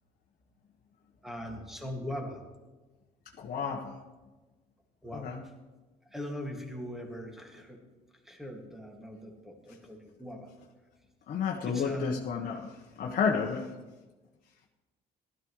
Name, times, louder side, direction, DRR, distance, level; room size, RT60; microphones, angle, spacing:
voice 1, 1.2-2.4 5.0-5.4 6.1-7.8 8.2-10.5 11.6-12.3, left 1 dB, ahead, 1 dB, 2.0 m, -40 dB
voice 2, 3.3-4.0 5.1-5.4 11.3-13.7, left 6 dB, 55° left, 0 dB, 1.1 m, -31 dB
15.5 x 12.5 x 3.1 m, 1.2 s
cardioid pair, 110°, 17 cm